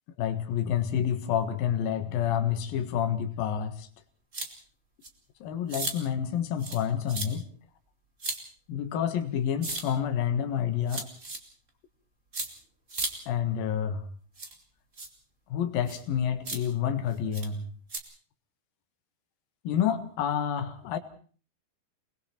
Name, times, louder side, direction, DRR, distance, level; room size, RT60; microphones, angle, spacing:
voice 1, 0.2-3.9 5.4-7.5 8.7-11.1 13.3-14.0 15.5-17.7 19.6-21.0, left 9 dB, 60° left, 7 dB, 3.1 m, -28 dB
sound 1, 4.3-4.5 5.0-5.1 5.7-5.9 6.6-6.8 7.1-7.3 8.2-8.4 9.6-9.8 10.9-11.4 12.3-12.5 12.9-13.1 14.4-14.5 15.0-15.1 15.9-16.0 16.5-16.6 17.3-17.5 17.9-18.0, right 3 dB, 25° right, 1.6 m, -34 dB
29.0 x 20.0 x 4.4 m, 0.42 s
omnidirectional pair, 5.1 m